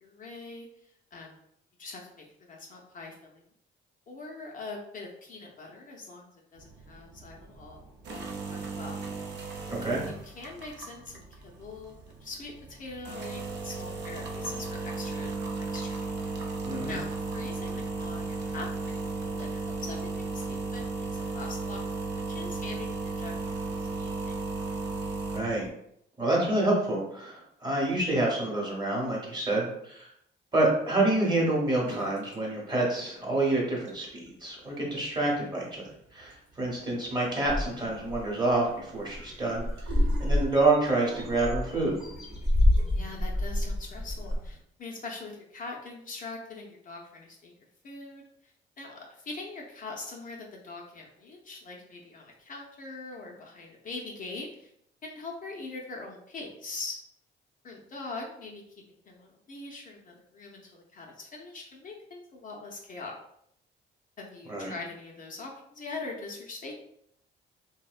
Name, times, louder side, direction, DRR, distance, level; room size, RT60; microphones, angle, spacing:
voice 1, 0.0-0.7 1.1-1.4 1.8-3.4 4.1-9.1 10.1-11.9 12.2-15.3 15.7-15.9 16.9-21.9 22.1-24.4 42.9-47.5 47.8-54.7 55.0-57.0 57.6-63.2 64.2-66.7, left 3 dB, 45° left, -1 dB, 0.5 m, -42 dB
sound 1, 6.6-25.7, right 3 dB, 65° right, 0.5 m, -35 dB
voice 2, 9.7-10.0 16.6-17.0 25.3-25.7 26.2-30.1 30.5-35.8 36.1-39.6 40.2-42.0 64.5-64.7, right 2 dB, 20° right, -3 dB, 0.9 m, -27 dB
sound 2, 31.8-32.4 32.7-33.3 33.7-43.2, right 1 dB, 80° right, 0.9 m, -48 dB
sound 3, 37.5-38.2 38.7-38.8 39.0-39.3 39.5-44.5, left 1 dB, ahead, 0.6 m, -27 dB
2.7 x 2.1 x 2.4 m, 0.74 s
cardioid pair, 90°, 20 cm